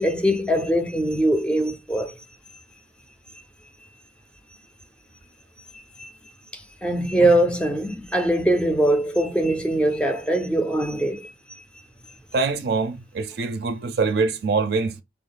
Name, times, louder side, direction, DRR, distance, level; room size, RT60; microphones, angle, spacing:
voice 1, 0.0-2.1 6.0-6.1 6.5-11.6, right 1 dB, 5° left, 0.4 m, -22 dB
voice 2, 12.3-15.0, right 4 dB, 55° right, 0.4 m, -24 dB
3.4 x 2.4 x 3.8 m
head